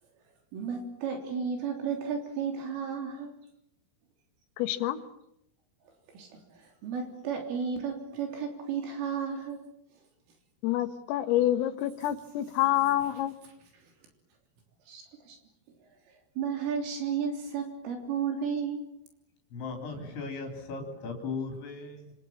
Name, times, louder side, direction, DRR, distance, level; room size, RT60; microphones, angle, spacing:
voice 1, 0.5-3.3 6.1-6.3 6.8-9.6 14.9-15.4 16.4-18.9, right 6 dB, 70° right, 3 dB, 5.8 m, -33 dB
voice 2, 4.6-5.0 10.6-13.4, left 13 dB, 80° left, 10 dB, 4.1 m, -27 dB
voice 3, 19.5-22.1, left 4 dB, 65° left, 4 dB, 5.6 m, -37 dB
27.5 x 27.0 x 7.3 m, 0.79 s
omnidirectional pair, 5.9 m